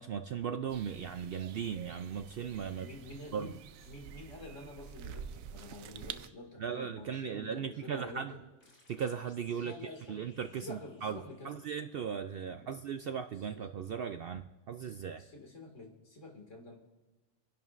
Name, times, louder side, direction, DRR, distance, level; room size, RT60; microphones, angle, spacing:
voice 1, 0.0-2.9 3.3-3.6 6.6-8.4 8.9-11.2 11.4-15.3, right 7 dB, 65° right, 0.6 m, -37 dB
sound 1, 0.7-6.3, right 8 dB, 85° right, 1.0 m, -48 dB
voice 2, 2.8-3.6 3.9-8.3 9.5-10.2 10.6-11.6 12.5-12.7 13.5-13.6 14.8-16.8, left 2 dB, 65° left, 2.5 m, -48 dB
sound 2, 8.6-12.1, left 2 dB, 85° left, 3.1 m, -65 dB
28.5 x 11.0 x 2.5 m
omnidirectional pair, 1.4 m